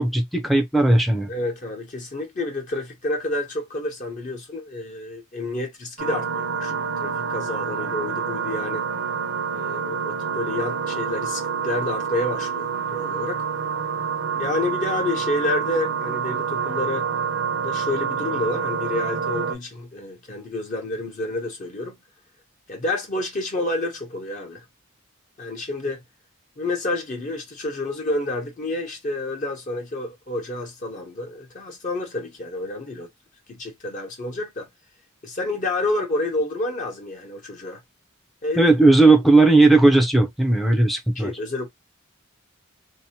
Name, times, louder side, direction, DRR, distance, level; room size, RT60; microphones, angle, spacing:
voice 1, 0.0-1.3 38.6-41.3, right 2 dB, ahead, 0.4 m, -16 dB
voice 2, 1.3-8.9 9.5-13.5 14.4-17.1 17.6-21.9 22.7-24.6 25.4-26.0 26.6-33.1 33.5-34.7 35.2-37.8 38.4-38.7 41.1-41.7, left 2 dB, 40° left, 0.7 m, -29 dB
sound 1, 6.0-19.6, right 6 dB, 80° right, 0.7 m, -27 dB
2.6 x 2.1 x 2.8 m
head